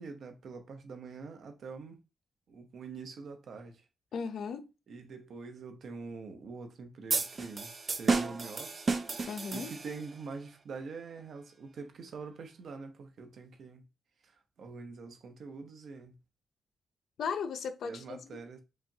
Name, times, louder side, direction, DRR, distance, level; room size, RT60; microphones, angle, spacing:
voice 1, 0.0-2.0 2.5-3.8 4.9-7.7 8.0-9.0 9.5-13.8 14.2-14.3 14.6-16.2 17.8-18.6, right 4 dB, 70° right, 0.9 m, -45 dB
voice 2, 4.1-4.7 9.3-9.7 17.2-18.4, left 6 dB, 75° left, 0.6 m, -36 dB
sound 1, 7.1-10.2, right 4 dB, 40° right, 0.5 m, -32 dB
4.9 x 2.4 x 2.8 m
cardioid pair, 115°, 0 cm